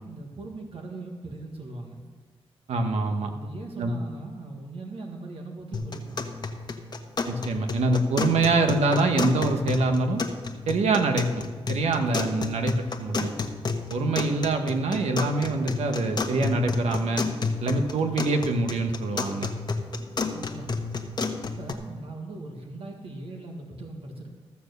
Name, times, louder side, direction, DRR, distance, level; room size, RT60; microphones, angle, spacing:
voice 1, 0.0-2.1 3.2-6.5 20.3-20.9 21.4-24.3, right 2 dB, 60° right, 1 dB, 1.7 m, -40 dB
voice 2, 2.7-3.3 3.8-3.9 7.3-10.2 10.7-13.3 13.9-17.3 17.6-19.5, right 3 dB, 85° right, 5 dB, 1.3 m, -25 dB
sound 1, 5.7-21.7, left 4 dB, 40° left, 1.1 m, -31 dB
14.5 x 7.0 x 6.7 m, 1.4 s
cardioid pair, 85°, 11 cm